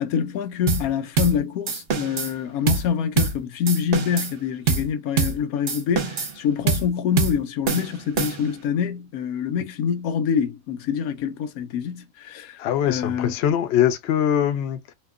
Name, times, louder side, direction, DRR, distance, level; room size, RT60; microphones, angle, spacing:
voice 1, 0.0-13.3, left 7 dB, 85° left, 1.1 m, -26 dB
sound 1, 0.7-0.9 1.2-1.4 1.7-2.3 2.7-2.9 3.2-3.4 3.7-4.3 4.7-4.9 5.2-5.4 5.7-6.4 6.7-6.9 7.2-7.4 7.7-8.6, right 5 dB, 50° right, 0.9 m, -24 dB
voice 2, 12.6-14.9, left 9 dB, 65° left, 0.7 m, -22 dB
2.8 x 2.2 x 2.4 m
omnidirectional pair, 1.5 m